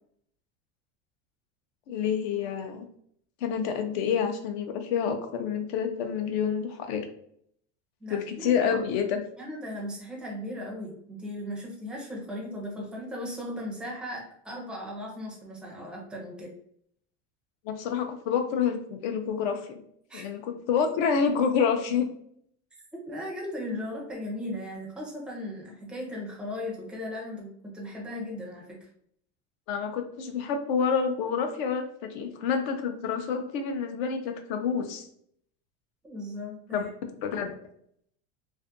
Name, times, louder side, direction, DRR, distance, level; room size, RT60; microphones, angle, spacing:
voice 1, 1.9-2.9 3.4-7.0 8.1-9.2 17.6-19.7 20.1-22.1 29.7-35.1 36.7-36.8 37.2-37.5, left 6 dB, 60° left, 6 dB, 0.6 m, -28 dB
voice 2, 8.0-8.8 9.4-16.5 20.1-20.3 22.9-28.8 36.0-36.9, left 1 dB, ahead, -2 dB, 0.4 m, -37 dB
2.5 x 2.5 x 2.5 m, 0.68 s
supercardioid pair, 145°, 37 cm